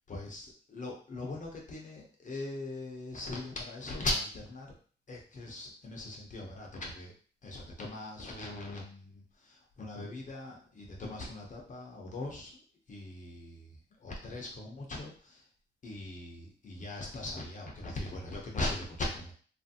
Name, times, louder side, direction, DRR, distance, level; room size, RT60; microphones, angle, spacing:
voice 1, 0.1-4.8 5.1-7.1 7.4-15.5 15.8-19.3, left 2 dB, 40° left, -1 dB, 0.6 m, -40 dB
2.9 x 2.5 x 2.7 m, 0.42 s
wide cardioid pair, 150°, 19 cm